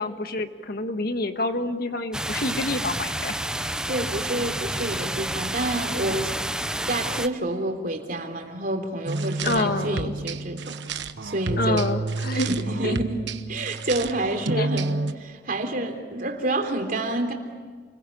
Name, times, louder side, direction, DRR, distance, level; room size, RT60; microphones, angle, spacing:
voice 1, 0.0-3.3 9.4-10.1 11.6-12.5 12.8-13.0 14.6-14.7, left 2 dB, 60° left, 8 dB, 1.4 m, -27 dB
sound 1, 2.1-7.3, right 1 dB, 5° right, 0.7 m, -29 dB
voice 2, 3.9-6.3 6.9-10.8 11.2-11.8 12.3-13.2 13.5-17.3, right 1 dB, 50° right, 4 dB, 3.4 m, -28 dB
sound 2, 9.1-15.1, right 3 dB, 90° right, 1.1 m, -29 dB
29.0 x 21.5 x 8.7 m, 1.5 s
head